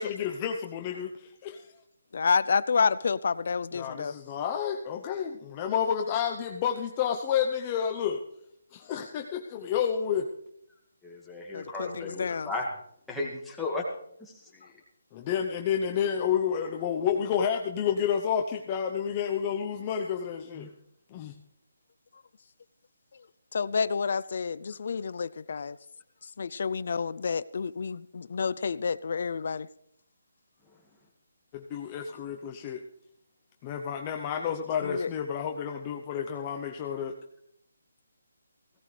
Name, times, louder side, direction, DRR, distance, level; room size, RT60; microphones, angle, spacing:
voice 1, 0.0-1.6 3.7-8.2 8.7-10.3 15.3-20.7 21.1-21.3 31.5-32.8 33.6-37.1, left 8 dB, 25° left, 0.8 m, -30 dB
voice 2, 2.1-4.1 11.5-12.5 23.5-25.8 26.4-29.7 34.8-35.1, left 5 dB, 55° left, 0.5 m, -29 dB
voice 3, 11.0-12.7 13.1-13.8 14.2-14.7 20.6-20.7, left 3 dB, 5° left, 2.1 m, -35 dB
17.0 x 16.5 x 3.3 m
hypercardioid pair, 160°, 0 cm